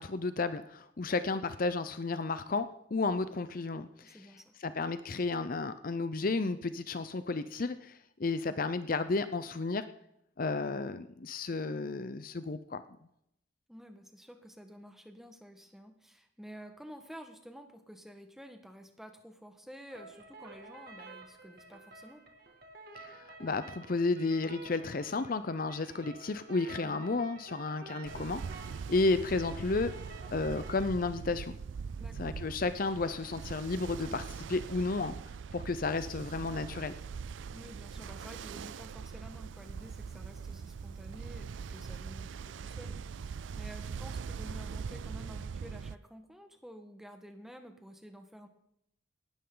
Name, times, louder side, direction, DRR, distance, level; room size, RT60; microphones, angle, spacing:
voice 1, 0.0-2.7 2.9-4.2 4.6-9.8 10.4-12.8 23.0-29.9 30.3-31.5 32.2-35.1 35.5-36.9, left 3 dB, 45° left, 12 dB, 0.6 m, -32 dB
voice 2, 4.0-4.5 13.7-22.2 26.8-27.0 32.0-32.3 37.5-48.5, equal, ahead, 6 dB, 1.4 m, -51 dB
sound 1, 19.9-30.9, right 3 dB, 50° right, 2.1 m, -50 dB
Ocean, 28.0-46.0, right 6 dB, 75° right, 0.4 m, -42 dB
18.5 x 12.5 x 3.9 m, 0.77 s
head